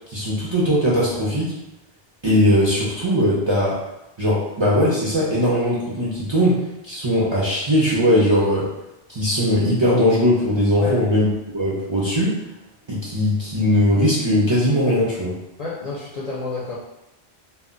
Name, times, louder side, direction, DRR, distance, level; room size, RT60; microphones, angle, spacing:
voice 1, 0.1-1.5 2.2-3.8 4.2-8.7 9.1-11.3 11.5-12.3 12.9-15.4, equal, 35° right, -7 dB, 0.5 m, -19 dB
voice 2, 15.6-16.7, left 4 dB, 50° left, -5 dB, 0.5 m, -29 dB
2.1 x 2.1 x 3.6 m, 0.93 s
omnidirectional pair, 1.0 m